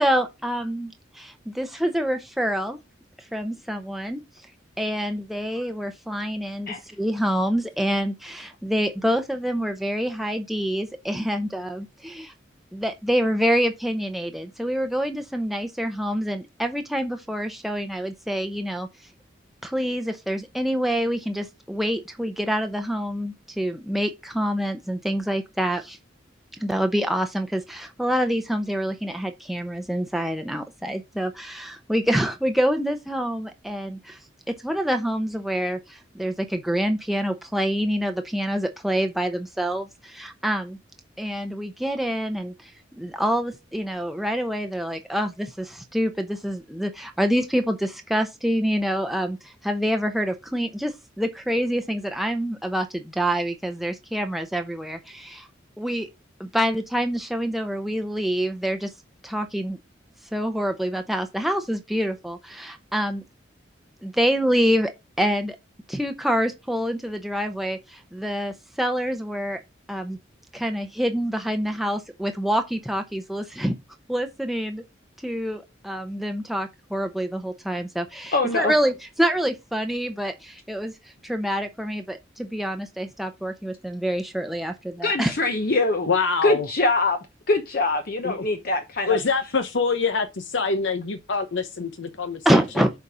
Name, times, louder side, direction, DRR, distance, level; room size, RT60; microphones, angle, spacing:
voice 1, 0.0-2.8 3.3-4.2 4.8-12.3 12.7-18.9 19.6-26.0 26.6-34.2 34.5-40.8 41.2-42.7 43.0-55.5 55.8-56.1 56.4-58.9 59.2-59.8 60.3-63.2 64.0-65.6 65.9-69.6 69.9-70.2 70.5-73.7 74.1-74.8 75.2-80.9 81.2-85.3 92.4-92.9, equal, ahead, 0.7 m, -26 dB
voice 2, 78.3-78.7 85.0-86.1 86.4-87.2 87.5-89.2, left 2 dB, 50° left, 0.9 m, -23 dB
voice 3, 86.1-86.7 88.2-88.4 89.1-92.6, left 4 dB, 75° left, 0.8 m, -25 dB
6.9 x 4.1 x 5.0 m
head